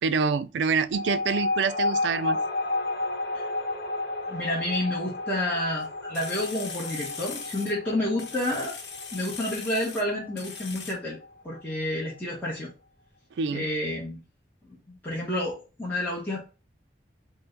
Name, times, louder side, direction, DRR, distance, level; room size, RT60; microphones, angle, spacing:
voice 1, 0.0-2.4 13.4-13.7, right 5 dB, 80° right, 0.3 m, -26 dB
sound 1, 0.9-11.8, left 2 dB, 55° left, 0.9 m, -32 dB
voice 2, 4.3-8.8 9.1-11.2 11.4-12.7 13.5-14.2 14.7-16.4, left 1 dB, 10° left, 0.9 m, -30 dB
sound 2, 5.8-5.9 6.1-7.7 8.2-10.0 10.4-10.9, left 5 dB, 80° left, 0.9 m, -39 dB
4.5 x 2.1 x 3.7 m
head